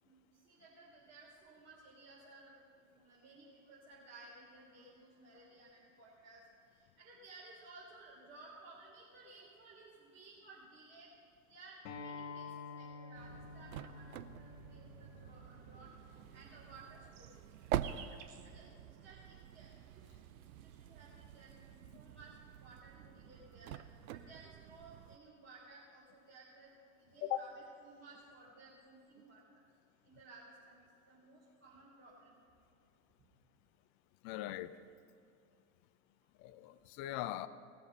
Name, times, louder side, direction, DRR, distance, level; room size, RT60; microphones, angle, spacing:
voice 1, 0.0-6.4 6.7-11.1 11.5-15.9 16.3-17.4 17.7-18.1 18.4-20.2 20.6-23.7 24.1-26.7 27.0-29.6 30.0-32.3, right 3 dB, 25° right, -8 dB, 3.5 m, -58 dB
Acoustic guitar, 11.8-17.0, left 5 dB, 60° left, 1.6 m, -50 dB
sound 1, 13.1-25.2, right 11 dB, 70° right, 0.6 m, -46 dB
sound 2, 16.7-19.8 20.8-22.1 23.0-24.8 26.2-28.4 28.8-29.3 29.6-30.7 31.0-31.6, right 7 dB, 55° right, 1.2 m, -61 dB
voice 2, 34.2-34.8 36.4-37.5, left 13 dB, 40° left, 14 dB, 0.6 m, -40 dB
18.5 x 7.2 x 5.5 m, 2.4 s
hypercardioid pair, 90°, 45 cm